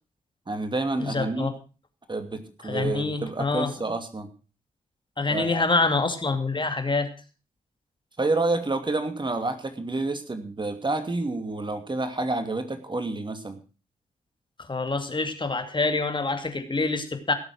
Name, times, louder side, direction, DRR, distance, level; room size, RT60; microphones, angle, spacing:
voice 1, 0.5-1.6 2.1-4.3 5.3-5.6 8.2-13.6, right 2 dB, 30° right, 8 dB, 2.7 m, -29 dB
voice 2, 1.0-1.5 2.6-3.7 5.2-7.1 14.6-17.3, left 3 dB, 35° left, 7 dB, 2.6 m, -26 dB
17.0 x 7.9 x 6.1 m, 0.35 s
supercardioid pair, 45°, 15 cm